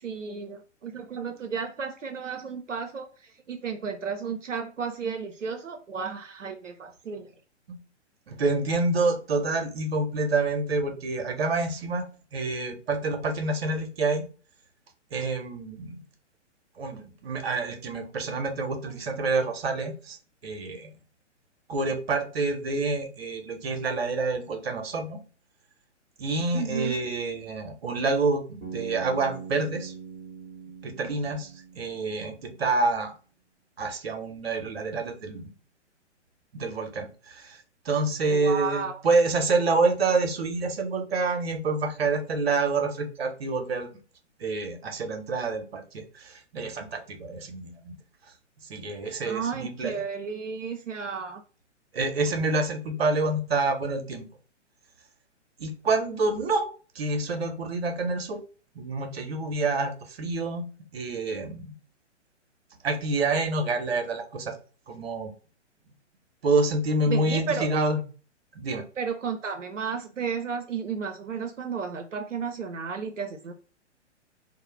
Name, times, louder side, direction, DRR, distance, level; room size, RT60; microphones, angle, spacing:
voice 1, 0.0-7.3 26.5-27.0 38.3-39.0 49.2-51.4 67.1-67.7 69.0-73.5, right 6 dB, 85° right, 4 dB, 0.5 m, -33 dB
voice 2, 8.3-12.1 12.3-14.2 15.1-16.0 16.8-20.2 20.4-20.9 21.7-25.2 26.2-29.9 30.8-31.5 31.7-33.1 33.8-35.5 36.5-37.6 37.8-43.9 44.4-48.0 48.7-49.9 51.9-54.2 55.6-56.7 57.0-58.4 58.8-60.6 60.9-61.7 62.8-64.5 64.9-65.3 66.4-68.0 68.5-68.8, right 3 dB, 55° right, 5 dB, 0.7 m, -27 dB
Bass guitar, 28.6-32.6, right 6 dB, 15° right, 0.8 m, -42 dB
2.3 x 2.0 x 3.0 m, 0.37 s
figure-of-eight pair, 120°, 36 cm